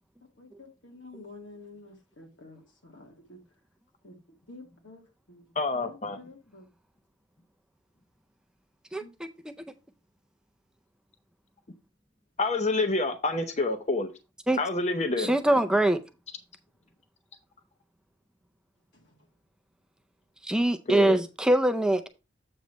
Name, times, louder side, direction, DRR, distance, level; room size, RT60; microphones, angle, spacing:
voice 1, 0.4-3.4 4.0-4.1 4.5-5.0 5.3-6.7 9.0-9.1, left 2 dB, 85° left, 2.2 m, -49 dB
voice 2, 5.6-6.2 12.4-14.1 14.6-15.3 20.9-21.2, left 3 dB, 35° left, 0.7 m, -27 dB
voice 3, 8.9-9.3 14.5-14.6 15.2-16.0 20.4-22.1, right 1 dB, 5° right, 0.4 m, -23 dB
7.9 x 3.1 x 6.3 m
head